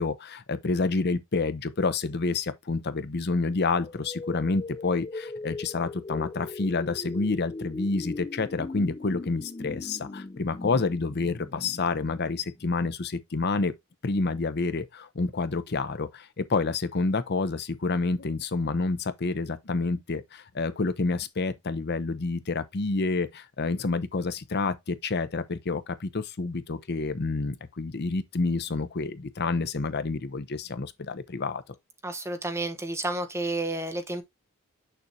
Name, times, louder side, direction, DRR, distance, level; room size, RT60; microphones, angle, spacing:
voice 1, 0.0-13.7 14.0-31.6, left 3 dB, 50° left, 0.7 m, -28 dB
sound 1, 3.8-12.7, left 3 dB, 20° left, 0.4 m, -39 dB
voice 2, 32.0-34.2, right 2 dB, 10° right, 1.1 m, -31 dB
6.8 x 6.0 x 2.7 m
head